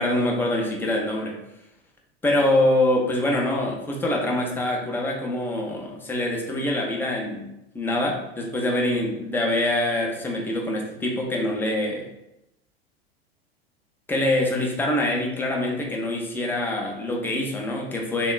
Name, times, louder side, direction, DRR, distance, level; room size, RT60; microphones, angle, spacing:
voice 1, 0.0-1.4 2.2-7.5 7.7-12.1 14.1-18.3, left 1 dB, 5° left, -1 dB, 0.4 m, -24 dB
3.5 x 2.2 x 2.3 m, 0.86 s
figure-of-eight pair, 85°, 31 cm